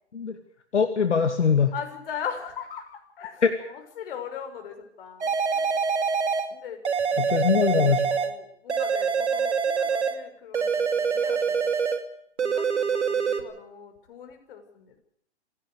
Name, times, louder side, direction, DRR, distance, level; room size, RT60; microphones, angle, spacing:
voice 1, 0.7-1.7 3.4-3.5 7.2-8.1, left 6 dB, 80° left, 7 dB, 2.5 m, -22 dB
voice 2, 1.7-5.8 6.5-6.8 8.1-11.7 12.4-15.0, left 7 dB, 50° left, 5 dB, 6.8 m, -39 dB
sound 1, 5.2-6.5 6.8-8.4 8.7-10.2 10.5-12.1 12.4-13.4, right 6 dB, 80° right, 2.7 m, -25 dB
26.5 x 17.5 x 6.7 m, 0.68 s
hypercardioid pair, 135°, 34 cm